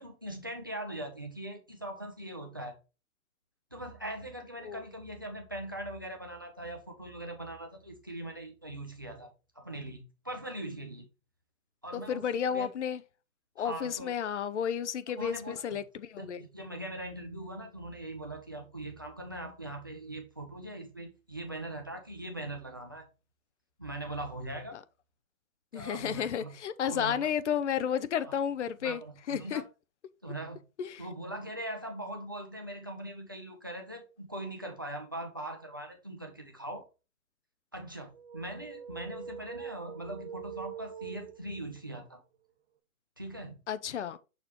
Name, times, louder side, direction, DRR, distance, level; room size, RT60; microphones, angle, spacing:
voice 1, 0.0-2.8 3.7-11.1 11.8-12.7 13.6-14.1 15.1-15.8 16.2-23.1 23.8-24.8 25.7-26.5 26.8-27.3 28.8-29.6 30.2-30.6 31.0-36.8 37.7-42.2 43.2-43.6, right 1 dB, 15° right, 0.4 m, -41 dB
voice 2, 11.9-13.0 13.6-16.4 25.7-29.0 29.3-29.6 30.8-31.0 43.7-44.2, left 8 dB, 60° left, 0.6 m, -32 dB
sound 1, 38.1-41.8, right 8 dB, 50° right, 0.8 m, -44 dB
6.6 x 2.9 x 5.1 m
hypercardioid pair, 160°, 41 cm